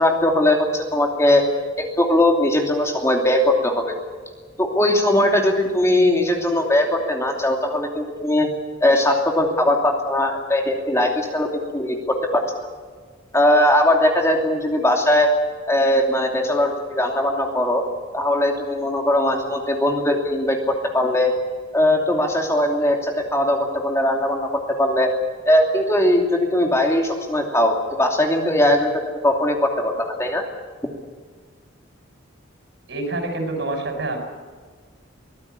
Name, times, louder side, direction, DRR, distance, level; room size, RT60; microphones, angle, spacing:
voice 1, 0.0-1.4 1.8-3.9 4.6-8.5 8.8-12.4 13.3-15.3 15.7-17.8 18.1-21.3 21.7-24.5 24.8-25.1 25.5-30.4, left 1 dB, 15° left, 2 dB, 2.8 m, -20 dB
voice 2, 32.9-34.2, right 2 dB, 60° right, 4 dB, 6.7 m, -26 dB
24.0 x 18.0 x 8.4 m, 1.5 s
head